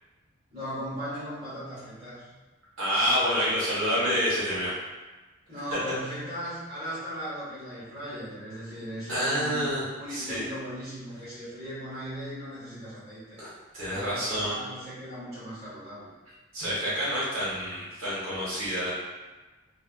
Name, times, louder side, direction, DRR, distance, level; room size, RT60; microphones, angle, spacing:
voice 1, 0.5-2.3 5.5-9.6 9.9-13.4 13.8-16.1, equal, 30° right, -12 dB, 1.2 m, -38 dB
voice 2, 2.8-4.7 9.1-9.8 10.1-10.4 13.4-13.5 13.7-14.6 16.5-18.9, equal, 80° right, -10 dB, 1.3 m, -28 dB
3.4 x 2.0 x 2.4 m, 1.2 s
head